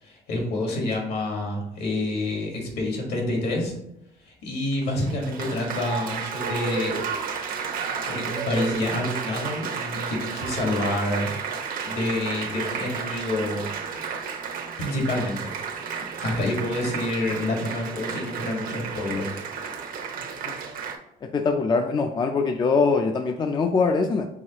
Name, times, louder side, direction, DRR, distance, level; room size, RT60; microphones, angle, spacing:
voice 1, 0.0-3.7 4.2-7.1 8.0-11.3 11.8-13.7 14.8-15.5 16.2-19.3, left 1 dB, 70° left, 1 dB, 1.6 m, -28 dB
Applause, 4.7-21.0, right 6 dB, 55° right, 0.7 m, -32 dB
voice 2, 21.3-24.3, left 4 dB, 25° left, 5 dB, 0.4 m, -22 dB
4.7 x 3.7 x 2.9 m, 0.81 s
cardioid pair, 110°, 17 cm